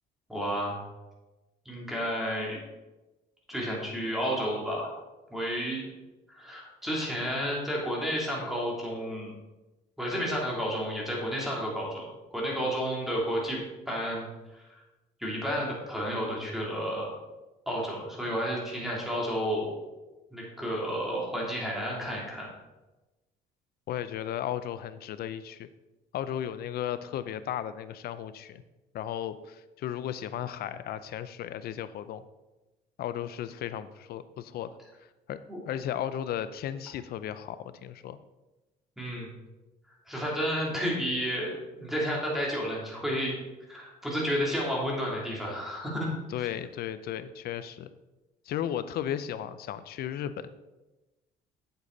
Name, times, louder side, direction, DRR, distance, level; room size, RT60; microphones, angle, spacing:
voice 1, 0.3-0.8 1.6-2.6 3.5-4.9 5.3-5.8 6.3-9.3 10.0-13.6 13.9-14.8 15.2-17.1 17.7-19.7 20.3-22.5 35.5-35.6 39.0-39.3 40.1-43.3 43.7-46.1 46.4-46.5, equal, ahead, -4 dB, 3.1 m, -31 dB
voice 2, 23.9-25.7 26.1-28.6 28.9-32.2 33.0-34.7 35.3-35.4 35.7-38.2 46.3-47.9 48.5-50.5, left 10 dB, 65° left, 13 dB, 0.6 m, -35 dB
8.4 x 8.0 x 4.0 m, 1.1 s
cardioid pair, 110°, 17 cm